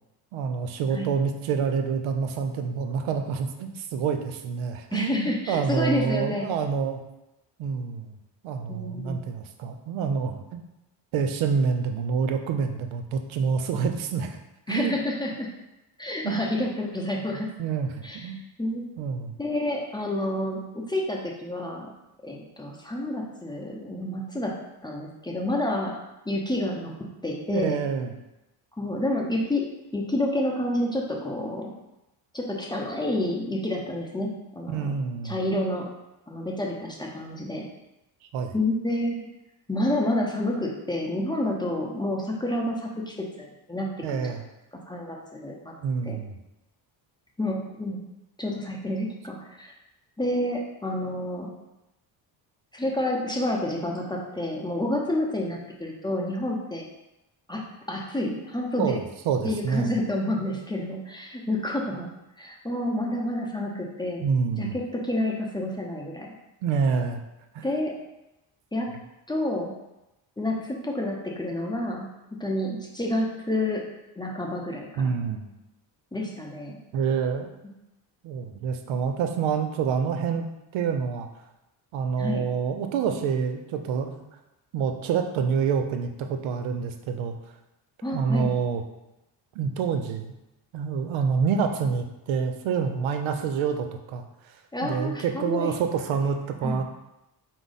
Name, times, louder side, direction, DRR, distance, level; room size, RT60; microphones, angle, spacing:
voice 1, 0.3-7.0 7.6-8.2 8.4-10.6 11.1-14.4 14.7-15.0 16.2-16.4 17.6-18.4 19.0-19.4 27.5-28.1 34.7-35.4 38.3-38.5 44.0-44.5 45.8-46.4 58.8-60.0 64.2-64.8 66.6-67.2 67.5-67.6 75.0-75.5 76.9-77.5 78.2-80.4 80.7-81.3 81.9-84.2 84.7-87.4 88.1-88.8 89.6-90.3 90.7-94.6 94.8-96.8, right 6 dB, 75° right, 6 dB, 0.6 m, -27 dB
voice 2, 4.9-6.5 8.7-9.2 14.7-15.5 16.0-17.5 18.0-18.3 18.6-18.8 19.4-20.6 20.9-21.9 22.2-24.5 24.8-25.9 26.3-26.9 27.2-27.8 28.8-29.6 29.9-31.7 32.3-34.9 35.2-35.9 36.3-37.6 38.5-39.3 39.7-44.2 44.9-45.7 46.0-46.2 47.4-48.0 48.4-49.7 50.2-51.5 52.7-56.8 57.5-57.6 57.9-59.0 59.4-62.1 62.4-64.2 64.6-66.3 67.6-67.9 68.7-68.9 69.3-69.7 70.4-72.1 72.4-73.8 74.2-75.0 76.1-76.8 82.2-82.4 88.0-88.5 94.7-95.7 96.6-96.8, left 1 dB, 10° left, -1 dB, 0.7 m, -29 dB
4.6 x 2.0 x 4.0 m, 0.94 s
supercardioid pair, 75°, 48 cm